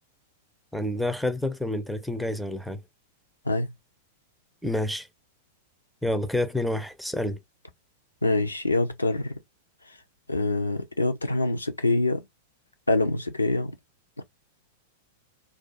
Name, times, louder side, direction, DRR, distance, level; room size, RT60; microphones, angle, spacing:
voice 1, 0.7-2.8 4.6-5.1 6.0-7.4, left 1 dB, ahead, 0.4 m, -28 dB
voice 2, 8.2-9.4 9.8-10.0 10.3-12.3 12.9-13.8 14.2-14.3, left 2 dB, 85° left, 0.4 m, -25 dB
2.3 x 2.2 x 2.6 m
figure-of-eight pair, 95°, 0 cm